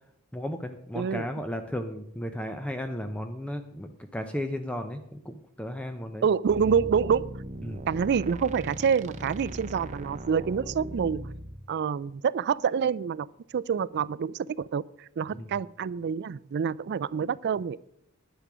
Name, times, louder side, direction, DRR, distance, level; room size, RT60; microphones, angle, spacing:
voice 1, 0.3-6.3 7.6-7.8 15.3-15.5, equal, 5° left, 7 dB, 0.6 m, -34 dB
voice 2, 6.2-7.3 7.9-11.3 11.7-13.3 13.5-17.8, right 6 dB, 50° right, 20 dB, 0.3 m, -27 dB
sound 1, 6.5-11.6, right 1 dB, 35° right, 0.9 m, -39 dB
10.0 x 10.0 x 6.1 m, 0.77 s
head